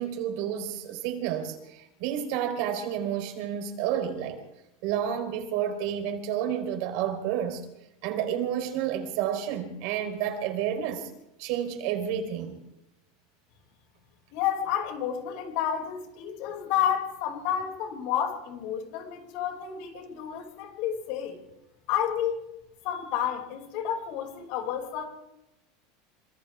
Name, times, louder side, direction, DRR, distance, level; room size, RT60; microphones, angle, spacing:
voice 1, 0.0-4.4 4.8-7.7 8.0-11.1 11.4-12.6, right 9 dB, 55° right, 4.3 m, -30 dB
voice 2, 14.3-21.4 21.9-22.4 22.8-25.0, left 9 dB, 55° left, 6.4 m, -30 dB
28.0 x 26.5 x 3.7 m
supercardioid pair, 160°, 0 cm